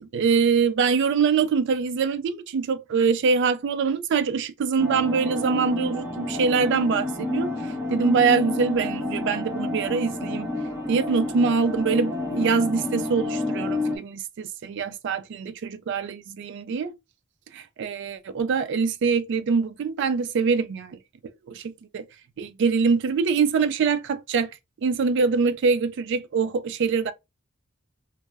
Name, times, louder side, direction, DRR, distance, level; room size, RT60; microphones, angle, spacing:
voice 1, 0.0-7.5 7.9-10.5 10.9-16.9 17.5-21.0 21.5-22.0 22.4-24.5 24.8-27.1, right 5 dB, 55° right, 0.3 m, -24 dB
sound 1, 4.8-14.0, left 2 dB, 10° right, 0.7 m, -29 dB
2.0 x 2.0 x 3.3 m
head